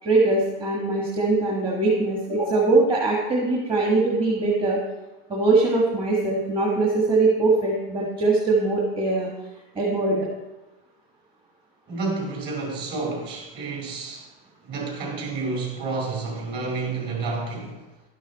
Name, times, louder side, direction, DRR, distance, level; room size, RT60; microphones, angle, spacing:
voice 1, 0.0-4.8 5.3-9.3 9.7-10.3, right 3 dB, 15° right, -3 dB, 1.7 m, -22 dB
voice 2, 11.9-14.3 14.6-17.8, right 3 dB, 35° right, 0 dB, 5.0 m, -30 dB
12.0 x 11.0 x 4.2 m, 1.1 s
supercardioid pair, 155°, 30 cm